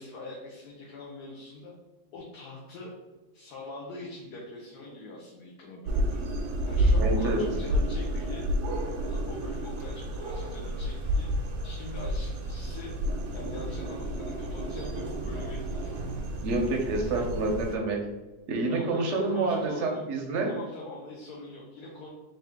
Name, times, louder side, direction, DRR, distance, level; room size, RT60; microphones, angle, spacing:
voice 1, 0.0-1.7 2.1-2.9 3.3-6.2 6.6-8.4 9.0-11.3 11.6-12.9 13.3-16.0 18.7-20.1 20.4-22.1, left 2 dB, 70° left, -3 dB, 1.2 m, -43 dB
sound 1, 5.9-17.7, equal, 75° right, 1.2 m, -30 dB
voice 2, 7.0-7.4 16.4-18.0 18.5-20.5, right 3 dB, 55° right, 1 dB, 0.9 m, -28 dB
3.7 x 2.8 x 3.5 m, 1.1 s
omnidirectional pair, 1.8 m